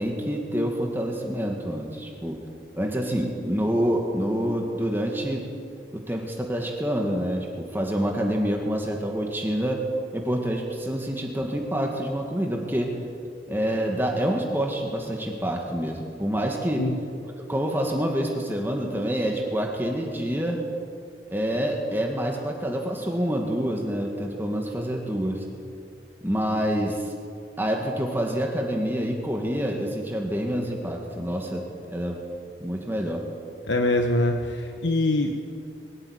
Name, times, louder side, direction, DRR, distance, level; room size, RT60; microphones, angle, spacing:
voice 1, 0.0-2.4 2.7-5.4 5.9-9.8 10.1-13.0 13.5-16.8 17.5-20.6 21.3-25.4 26.2-27.1 27.6-32.2 32.6-33.2, equal, 10° right, 1 dB, 1.8 m, -27 dB
voice 2, 33.7-35.3, left 2 dB, 80° left, 4 dB, 1.2 m, -23 dB
22.5 x 13.0 x 9.6 m, 2.4 s
head